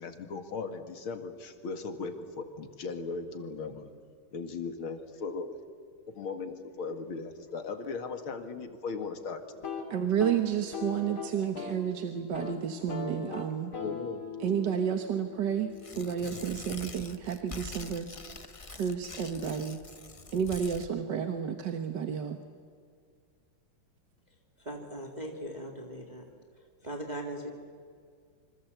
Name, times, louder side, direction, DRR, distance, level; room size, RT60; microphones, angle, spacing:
voice 1, 0.0-3.9 4.3-5.6 6.1-9.4 13.8-14.3, left 4 dB, 85° left, 7 dB, 2.8 m, -38 dB
sound 1, 9.5-11.9 12.2-12.6 12.9-16.7, left 5 dB, 55° left, 2.8 m, -41 dB
voice 2, 9.9-13.7 14.4-15.7 16.0-18.1 18.6-19.8 20.3-22.4, right 8 dB, 60° right, 6 dB, 1.8 m, -31 dB
Tearing, 15.7-20.9, left 3 dB, 30° left, 0.6 m, -45 dB
voice 3, 24.6-26.3 26.8-27.5, right 1 dB, 20° right, 3 dB, 2.2 m, -39 dB
27.0 x 26.0 x 8.1 m, 2.1 s
omnidirectional pair, 2.2 m